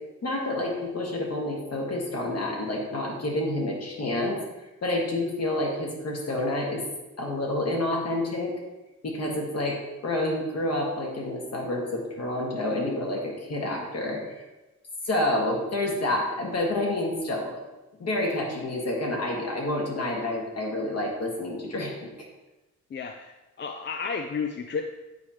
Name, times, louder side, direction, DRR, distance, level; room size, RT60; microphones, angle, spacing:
voice 1, 0.2-4.4 4.8-6.8 7.2-8.5 9.0-9.8 10.0-14.2 15.0-17.6 18.0-22.1, left 1 dB, 55° left, -1 dB, 1.7 m, -28 dB
voice 2, 22.9-24.8, left 5 dB, 40° left, 5 dB, 0.4 m, -32 dB
8.1 x 4.8 x 2.9 m, 1.1 s
cardioid pair, 110°, 31 cm